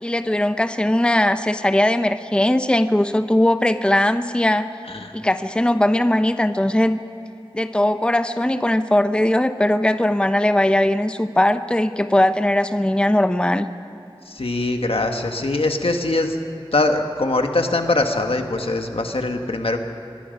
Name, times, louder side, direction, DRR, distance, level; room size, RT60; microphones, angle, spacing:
voice 1, 0.0-4.7 5.1-7.0 7.5-13.7, left 1 dB, 10° left, 10 dB, 0.7 m, -19 dB
voice 2, 14.3-16.4 16.7-19.8, left 2 dB, 80° left, 4 dB, 1.6 m, -22 dB
25.5 x 21.5 x 5.4 m, 2.8 s
wide cardioid pair, 55°, 9 cm